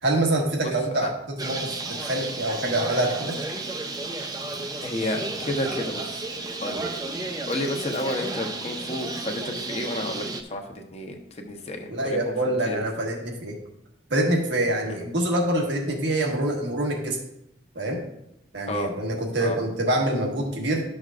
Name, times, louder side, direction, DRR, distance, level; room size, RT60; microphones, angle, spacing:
voice 1, 0.0-1.7 2.0-3.4 11.9-13.6 14.1-17.2 17.7-18.0 18.5-20.8, right 1 dB, 80° right, 0 dB, 1.5 m, -25 dB
voice 2, 0.6-1.1 4.8-6.3 6.5-6.8 7.5-12.2 12.7-12.8 14.9-15.0 18.7-18.9 19.4-19.6, left 1 dB, 35° left, 3 dB, 1.0 m, -31 dB
Bird, 1.4-10.4, right 3 dB, 20° right, 0.6 m, -33 dB
12.0 x 6.3 x 2.5 m, 0.82 s
head